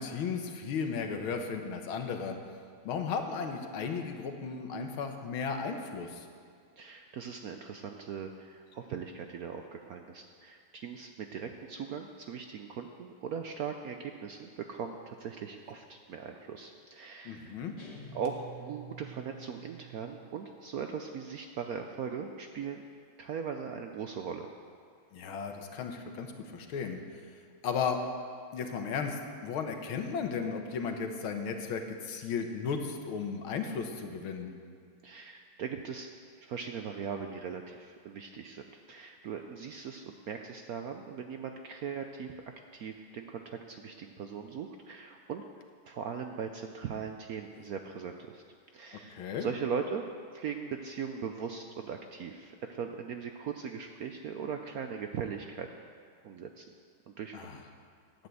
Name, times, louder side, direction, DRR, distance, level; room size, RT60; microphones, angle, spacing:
voice 1, 0.0-2.4 2.9-6.3 17.3-17.7 25.1-27.0 27.6-28.0 28.5-34.5 49.1-49.5 57.3-57.6, left 6 dB, 80° left, 5 dB, 1.9 m, -35 dB
voice 2, 6.8-17.6 18.1-22.8 23.2-24.5 35.0-36.1 36.4-42.4 42.7-45.4 45.9-48.4 48.7-50.1 50.3-55.8 56.2-56.6 57.1-57.4, right 6 dB, 75° right, 5 dB, 0.8 m, -39 dB
sound 1, 17.8-20.3, right 5 dB, 55° left, 2.0 m, -48 dB
11.5 x 8.4 x 7.8 m, 2.2 s
omnidirectional pair, 2.3 m